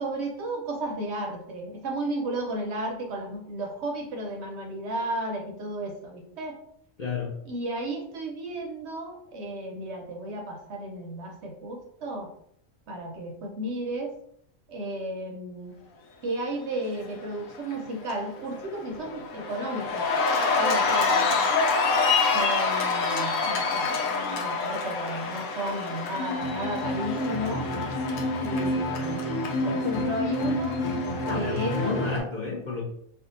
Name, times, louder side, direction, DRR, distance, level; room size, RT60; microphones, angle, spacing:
voice 1, 0.0-6.6 7.5-12.3 12.9-14.1 14.7-15.8 16.2-20.1 20.6-21.5 22.3-27.7 28.4-29.2 29.6-30.8 31.3-31.8, right 1 dB, 65° right, 2 dB, 0.7 m, -33 dB
voice 2, 7.0-7.4 31.3-32.8, left 4 dB, 55° left, -5 dB, 0.5 m, -31 dB
Cheering, 17.3-17.7 18.1-32.2, left 3 dB, 85° left, 1.1 m, -26 dB
2.6 x 2.3 x 3.8 m, 0.69 s
omnidirectional pair, 1.4 m